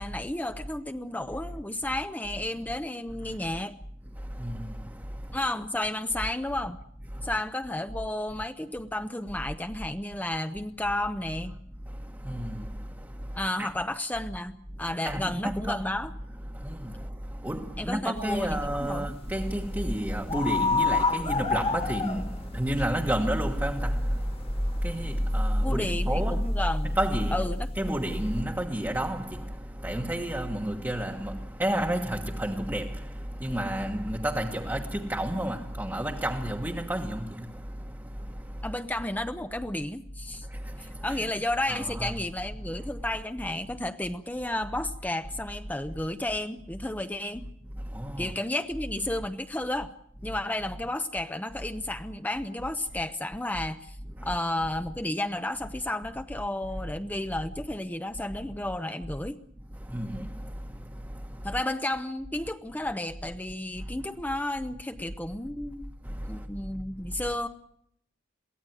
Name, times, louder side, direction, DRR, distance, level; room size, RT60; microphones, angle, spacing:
voice 1, 0.0-3.7 5.3-6.8 7.2-11.6 13.3-16.1 17.8-19.1 25.6-27.0 27.3-27.9 38.6-40.5 40.8-47.4 48.2-49.9 50.2-54.0 54.2-59.4 61.4-65.9 66.3-67.5, left 1 dB, 10° left, 0.8 m, -32 dB
voice 2, 4.1-5.4 7.1-7.3 11.9-13.7 15.0-15.9 16.5-26.6 26.9-27.5 27.7-38.8 40.3-41.3 41.7-42.2 42.7-42.9 47.8-48.3 50.3-50.4 54.1-54.4 59.7-61.6 63.8-63.9 66.0-66.5, right 1 dB, 10° right, 1.3 m, -32 dB
sound 1, 18.2-28.4, left 2 dB, 30° left, 1.8 m, -30 dB
23.0 x 16.5 x 9.2 m
head